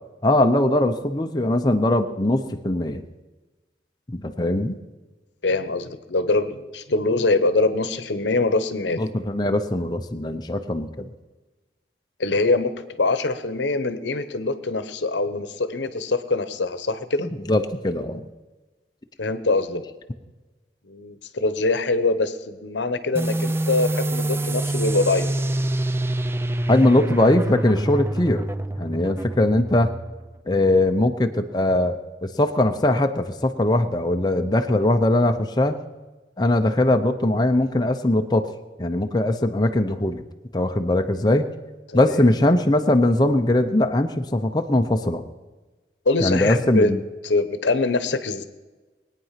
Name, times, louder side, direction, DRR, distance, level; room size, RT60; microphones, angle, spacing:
voice 1, 0.2-3.0 4.1-4.8 9.0-11.1 17.5-18.3 26.7-28.5 28.8-29.9 30.5-35.8 36.4-38.5 38.8-40.2 40.5-41.5 41.9-45.2 46.2-47.0, left 1 dB, 25° left, 5 dB, 0.7 m, -21 dB
voice 2, 5.4-9.0 12.2-12.7 13.0-17.3 19.2-19.8 20.9-25.3 41.9-42.2 46.1-46.9 47.2-48.4, left 3 dB, 80° left, 12 dB, 0.9 m, -23 dB
sound 1, 23.2-30.4, right 1 dB, 15° right, 0.4 m, -26 dB
21.0 x 9.2 x 5.8 m, 1.2 s
head